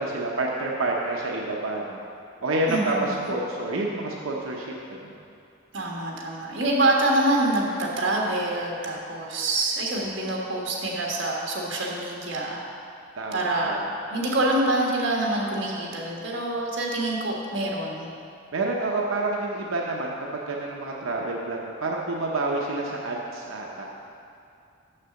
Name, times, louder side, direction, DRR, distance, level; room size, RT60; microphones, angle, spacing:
voice 1, 0.0-2.0 2.4-5.1 13.2-13.9 18.5-24.0, right 2 dB, 80° right, -2 dB, 0.8 m, -28 dB
voice 2, 2.7-3.3 5.7-12.6 13.3-13.7 14.1-18.1, right 1 dB, 60° right, -2 dB, 1.5 m, -26 dB
6.7 x 6.6 x 6.9 m, 2.5 s
head